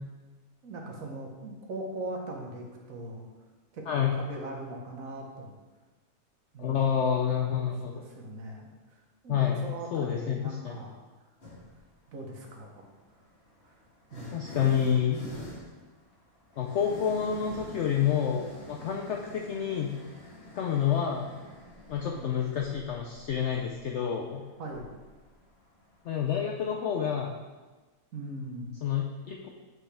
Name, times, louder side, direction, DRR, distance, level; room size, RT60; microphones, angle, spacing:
voice 1, 0.6-3.3 3.7-5.5 6.5-6.9 7.5-11.0 12.1-12.8 13.6-13.7 14.1-14.5 22.1-22.3 24.6-24.9 28.1-28.8, right 2 dB, 60° right, 1 dB, 1.3 m, -40 dB
voice 2, 3.9-4.2 6.6-7.9 9.3-10.8 14.3-15.2 16.6-19.9 20.5-21.3 21.9-24.4 26.0-27.4 28.8-29.5, left 8 dB, 70° left, 1 dB, 0.6 m, -28 dB
sound 1, 11.4-11.9 12.9-26.3, left 2 dB, 40° left, 1.5 m, -47 dB
7.6 x 4.6 x 3.4 m, 1.3 s
omnidirectional pair, 1.7 m